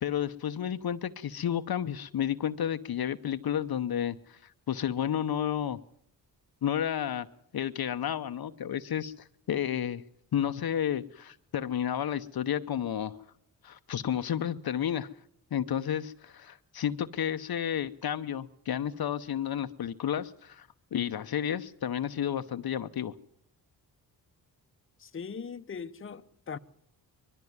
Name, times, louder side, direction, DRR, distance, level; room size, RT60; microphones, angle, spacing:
voice 1, 0.0-5.8 6.6-7.3 7.5-10.0 10.3-13.2 13.6-15.1 15.5-23.1, left 9 dB, 60° left, 0.8 m, -31 dB
voice 2, 25.0-26.6, left 6 dB, 30° left, 0.8 m, -40 dB
21.5 x 13.5 x 9.4 m
cardioid pair, 60°, 41 cm